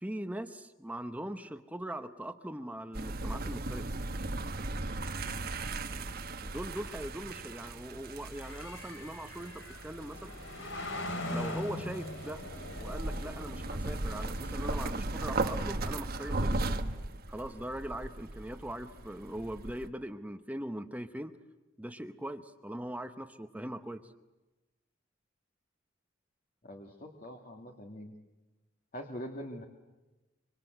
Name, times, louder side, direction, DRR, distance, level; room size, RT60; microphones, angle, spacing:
voice 1, 0.0-3.9 6.3-10.4 11.3-12.4 12.7-16.8 17.3-21.4 21.8-24.1, right 1 dB, 10° right, 8 dB, 0.9 m, -41 dB
sound 1, 2.9-19.9, right 2 dB, 55° right, 1.4 m, -37 dB
voice 2, 5.2-5.5 26.6-28.1 28.9-29.6, equal, 45° left, 1 dB, 2.4 m, -44 dB
sound 2, 6.3-16.9, left 1 dB, 90° left, 3.8 m, -43 dB
26.5 x 25.0 x 7.9 m, 1.1 s
head